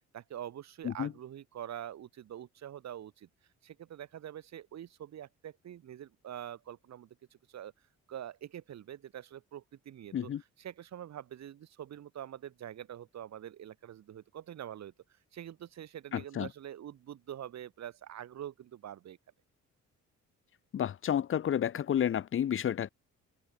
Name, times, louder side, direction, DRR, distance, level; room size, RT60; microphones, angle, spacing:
voice 1, 0.1-3.3 3.6-7.7 8.1-10.3 10.6-14.9 15.3-19.2, right 10 dB, 65° right, 2.1 m, -45 dB
voice 2, 16.1-16.5 20.7-22.9, left 9 dB, 45° left, 0.7 m, -31 dB
cardioid pair, 90°, 30 cm